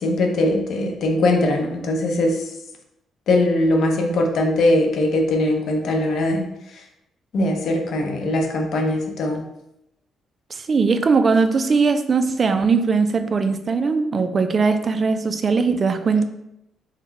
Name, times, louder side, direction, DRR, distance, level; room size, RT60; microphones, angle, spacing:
voice 1, 0.0-2.4 3.3-6.4 7.3-9.4, left 1 dB, 65° left, 2 dB, 0.8 m, -20 dB
voice 2, 10.5-16.2, right 4 dB, 40° right, 9 dB, 0.4 m, -20 dB
4.0 x 2.2 x 4.0 m, 0.85 s
cardioid pair, 90°, 0 cm